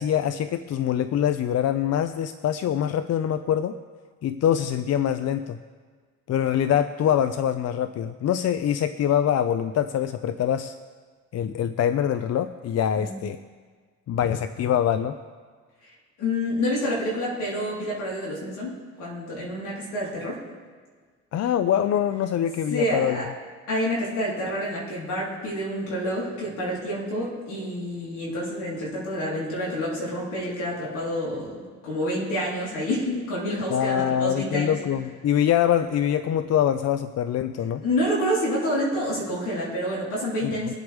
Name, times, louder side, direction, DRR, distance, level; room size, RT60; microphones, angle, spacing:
voice 1, 0.0-3.8 4.2-5.6 6.3-10.8 11.3-13.4 14.1-15.2 21.3-23.2 33.7-37.8 40.4-40.7, left 9 dB, 60° left, 11 dB, 0.5 m, -24 dB
voice 2, 16.2-20.4 22.7-23.3 23.7-34.7 37.8-40.7, equal, 85° left, -5 dB, 4.1 m, -28 dB
23.0 x 8.0 x 3.6 m, 1.6 s
cardioid pair, 90°, 30 cm